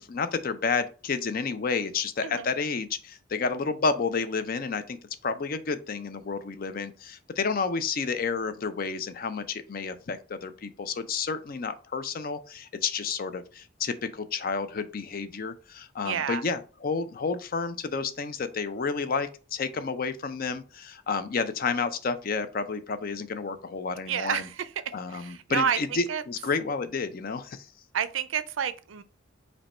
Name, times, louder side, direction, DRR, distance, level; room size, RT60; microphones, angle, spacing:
voice 1, 0.0-5.0 5.2-24.5 24.9-27.7, left 5 dB, 45° left, 0.5 m, -30 dB
voice 2, 16.0-16.4 24.1-24.7 25.1-26.2 27.9-29.0, right 8 dB, 80° right, 0.4 m, -29 dB
5.1 x 2.2 x 4.2 m
head